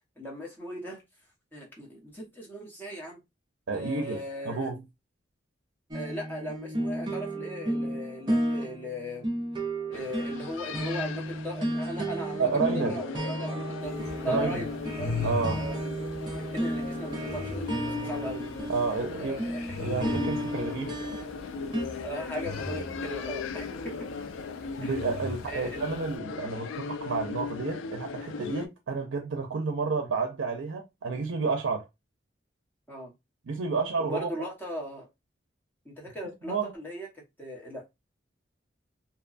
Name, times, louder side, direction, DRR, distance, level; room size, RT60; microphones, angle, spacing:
voice 1, 0.2-1.0 1.5-3.2 3.7-4.7 5.9-9.3 9.9-14.0 14.2-15.2 15.6-15.8 16.3-18.4 19.2-19.8 22.0-23.9 24.8-24.9 25.5-25.9 32.9-33.1 34.0-35.0 35.8-37.9, equal, 10° left, 0.8 m, -38 dB
voice 2, 3.7-4.2 4.5-4.8 12.4-13.0 14.3-14.6 15.2-15.6 18.7-19.4 19.8-20.9 24.8-31.9 33.5-34.3 36.4-36.7, right 4 dB, 85° right, 0.5 m, -30 dB
sound 1, 5.9-21.8, right 1 dB, 25° right, 0.5 m, -33 dB
sound 2, 9.9-28.7, left 5 dB, 90° left, 0.3 m, -38 dB
sound 3, 13.8-26.2, left 2 dB, 60° left, 1.4 m, -40 dB
2.8 x 2.2 x 2.4 m
head